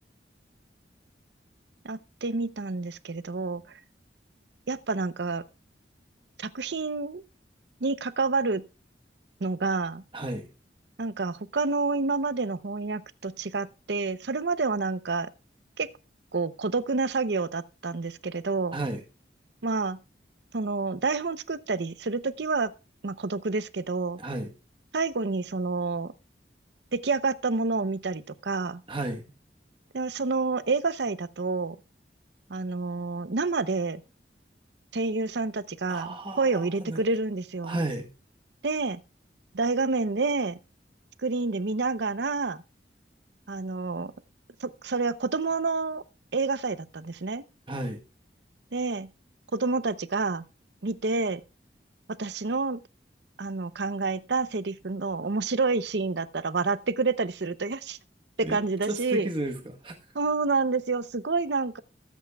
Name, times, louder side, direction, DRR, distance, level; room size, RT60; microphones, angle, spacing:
voice 1, 1.8-3.6 4.7-5.4 6.4-7.2 7.8-8.6 9.4-10.0 11.0-15.3 15.8-15.9 16.3-18.8 19.6-20.0 20.5-22.7 23.0-24.2 24.9-26.1 26.9-28.8 29.9-31.8 32.5-34.0 34.9-37.8 38.6-39.0 39.5-40.6 41.2-42.6 43.5-44.1 44.6-46.0 46.3-47.4 48.7-49.1 49.5-50.4 50.8-51.4 52.2-52.8 53.4-58.0 58.5-59.3 60.1-61.8, right 3 dB, 75° right, 0.7 m, -28 dB
voice 2, 10.1-10.5 18.7-19.0 24.2-24.5 28.9-29.3 35.9-37.0 37.6-38.1 47.7-48.0 58.4-58.6 58.9-60.0, right 2 dB, 30° right, 1.2 m, -33 dB
22.0 x 8.3 x 2.3 m
head